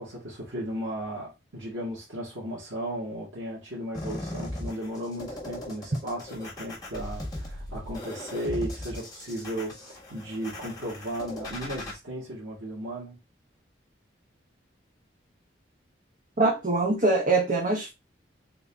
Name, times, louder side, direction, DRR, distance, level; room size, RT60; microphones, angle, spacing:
voice 1, 0.0-13.2, right 1 dB, 85° right, 1.7 m, -35 dB
sound 1, 3.9-11.9, left 1 dB, 20° left, 1.5 m, -38 dB
voice 2, 16.4-17.9, right 2 dB, 40° right, 0.8 m, -23 dB
3.9 x 2.6 x 3.4 m
head